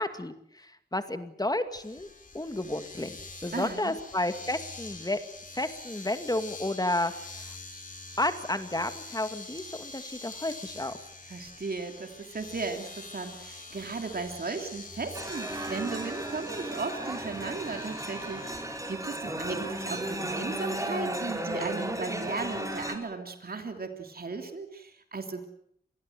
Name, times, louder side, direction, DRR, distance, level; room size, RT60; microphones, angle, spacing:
voice 1, 0.0-2.1 2.3-5.2 5.5-7.1 7.4-7.6 8.2-11.0, left 1 dB, 25° left, 9 dB, 2.3 m, -31 dB
Domestic sounds home sounds, 1.7-18.6, left 3 dB, 55° left, 4.1 m, -46 dB
voice 2, 3.5-3.9 11.3-25.5, right 4 dB, 65° right, 5 dB, 3.1 m, -36 dB
sound 1, 15.1-23.0, right 1 dB, 20° right, 4.6 m, -35 dB
26.5 x 20.5 x 8.0 m, 0.70 s
wide cardioid pair, 65°, 17 cm